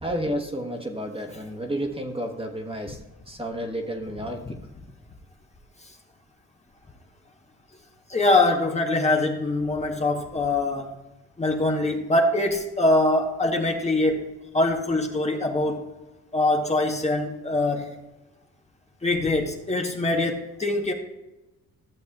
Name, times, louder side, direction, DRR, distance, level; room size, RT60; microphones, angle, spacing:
voice 1, 0.0-3.0 3.3-4.4, equal, 20° right, 2 dB, 1.3 m, -31 dB
voice 2, 8.1-10.9 11.4-14.2 14.5-15.8 16.3-17.9 19.0-20.9, left 2 dB, 20° left, 1 dB, 1.0 m, -23 dB
14.0 x 7.0 x 2.4 m, 1.0 s
cardioid pair, 90°, 30 cm